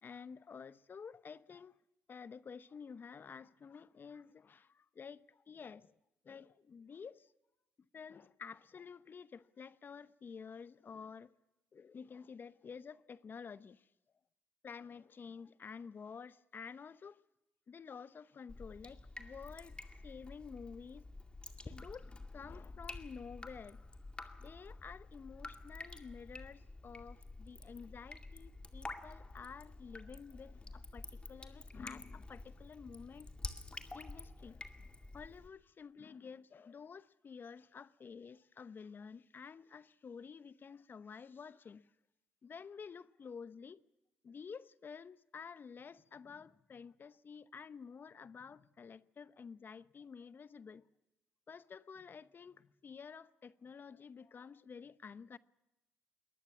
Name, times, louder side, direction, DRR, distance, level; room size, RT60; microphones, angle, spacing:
voice 1, 0.0-1.8 2.1-5.9 6.2-7.3 7.9-11.3 11.7-13.9 14.6-17.2 17.7-21.1 21.6-23.8 24.4-33.3 33.9-41.9 42.4-43.8 44.2-50.9 51.5-55.4, left 6 dB, 45° left, 0.8 m, -51 dB
Drip, 18.5-35.5, left 2 dB, 20° left, 2.2 m, -49 dB
22.5 x 19.5 x 7.3 m
hypercardioid pair, 55°, 5 cm